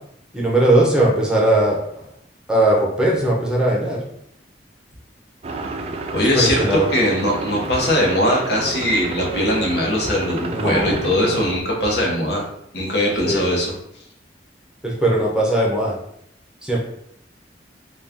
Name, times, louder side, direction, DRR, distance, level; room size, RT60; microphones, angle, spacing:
voice 1, 0.3-2.1 2.5-4.0 6.3-6.9 10.5-11.0 13.2-13.5 14.8-15.9 16.6-16.8, right 1 dB, 5° right, -3 dB, 0.7 m, -19 dB
sound 1, 5.4-11.6, right 2 dB, 35° right, 0.4 m, -30 dB
voice 2, 6.1-6.6 6.9-12.4 12.7-13.7, left 1 dB, 65° left, -2 dB, 1.0 m, -20 dB
4.1 x 2.3 x 3.5 m, 0.72 s
head